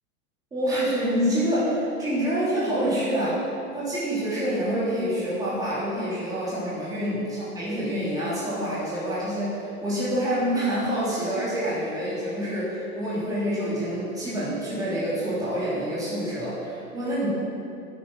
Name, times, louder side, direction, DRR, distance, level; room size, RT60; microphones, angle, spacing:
voice 1, 0.5-3.4 3.7-17.3, equal, 10° right, -10 dB, 3.1 m, -27 dB
9.4 x 8.8 x 6.2 m, 2.6 s
supercardioid pair, 165°, 45 cm